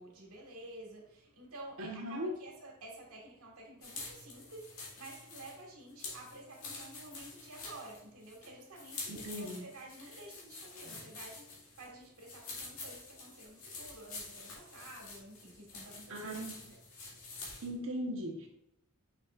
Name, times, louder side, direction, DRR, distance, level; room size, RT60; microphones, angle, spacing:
voice 1, 0.0-16.8 17.1-17.6, right 2 dB, 85° right, 0 dB, 1.9 m, -51 dB
voice 2, 1.8-2.3 9.1-9.6 10.9-11.0 16.1-16.6 17.6-18.5, equal, 65° right, 1 dB, 1.2 m, -38 dB
sound 1, 3.8-17.7, left 3 dB, 70° left, 2.1 m, -48 dB
6.2 x 6.1 x 2.5 m, 0.78 s
head